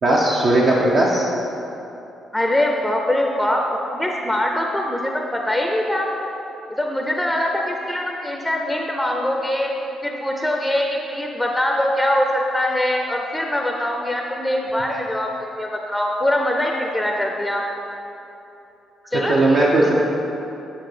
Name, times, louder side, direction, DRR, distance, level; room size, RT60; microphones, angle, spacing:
voice 1, 0.0-1.2 14.9-15.0 19.3-20.0, right 2 dB, 55° right, -4 dB, 0.8 m, -17 dB
voice 2, 2.3-3.6 3.9-6.1 6.7-9.7 10.0-17.6 19.1-19.6, left 1 dB, 5° left, 1 dB, 0.6 m, -23 dB
8.8 x 3.8 x 5.0 m, 2.9 s
cardioid pair, 90°, 0 cm